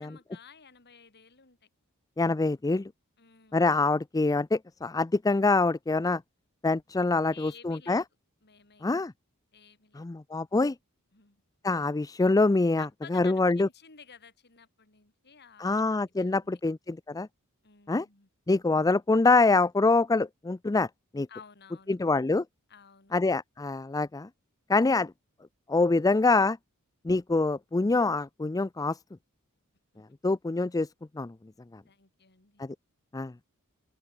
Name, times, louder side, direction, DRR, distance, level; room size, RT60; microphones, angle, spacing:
voice 1, 0.0-1.7 3.2-3.7 7.2-8.0 8.4-8.9 9.5-10.1 11.1-11.4 12.8-16.6 17.6-18.3 21.3-22.0 22.7-23.1 29.9-30.0 31.9-32.6, left 6 dB, 50° left, 3.7 m, -53 dB
voice 2, 2.2-2.9 3.5-6.2 6.6-8.0 8.8-9.1 9.9-10.7 11.6-13.7 15.6-17.3 17.9-18.1 18.5-20.9 21.1-21.3 21.9-22.4 23.1-24.3 24.7-25.1 25.7-26.6 27.0-29.0 30.2-30.9 31.2-31.3 31.7-31.8 32.6-32.7 33.1-33.3, left 3 dB, 15° left, 0.4 m, -25 dB
open air
head